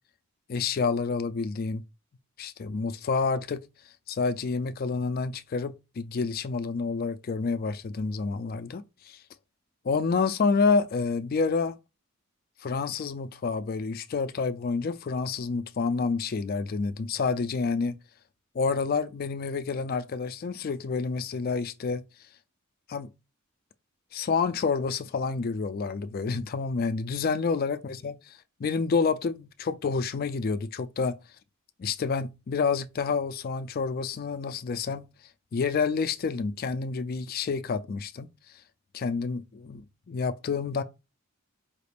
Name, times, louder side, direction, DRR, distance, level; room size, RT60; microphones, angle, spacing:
voice 1, 0.5-1.8 2.4-3.7 4.1-9.2 9.8-11.7 12.6-18.0 18.5-22.0 22.9-23.1 24.1-31.2 31.8-35.1 35.5-38.3 38.9-40.8, left 4 dB, 45° left, 0.3 m, -28 dB
4.9 x 2.4 x 3.3 m
head